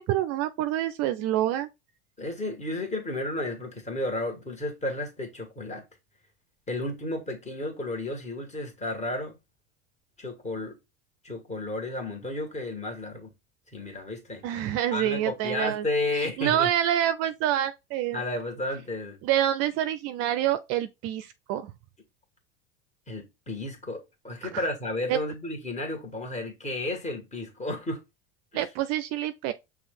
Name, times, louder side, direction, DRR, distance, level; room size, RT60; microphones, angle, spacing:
voice 1, 0.0-1.7 14.4-15.8 16.1-18.2 19.2-21.7 24.5-24.6 25.1-25.2 28.5-29.5, right 12 dB, 50° right, 0.5 m, -27 dB
voice 2, 2.2-5.8 6.7-9.4 10.2-10.8 11.2-13.3 13.7-14.4 14.9-16.7 18.1-19.2 23.1-28.0, left 2 dB, 20° left, 1.7 m, -32 dB
5.7 x 2.4 x 3.7 m
hypercardioid pair, 85°, 32 cm